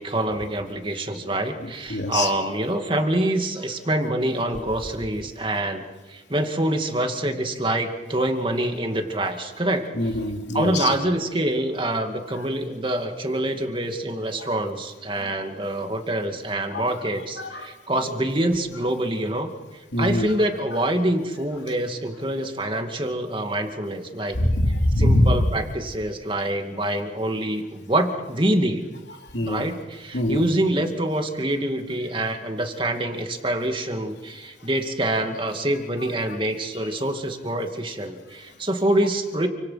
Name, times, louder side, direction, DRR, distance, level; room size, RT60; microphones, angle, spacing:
voice 1, 0.0-9.9 10.5-19.5 20.0-24.4 25.0-28.9 29.4-39.5, right 1 dB, 25° right, 5 dB, 2.4 m, -26 dB
voice 2, 1.6-2.3 9.9-10.9 14.4-14.5 16.7-16.9 17.4-17.7 18.0-18.1 19.9-20.3 24.2-25.4 29.3-29.7 30.1-30.5 36.8-36.9, left 1 dB, 70° left, 3 dB, 3.2 m, -23 dB
29.0 x 26.0 x 5.9 m, 1.2 s
head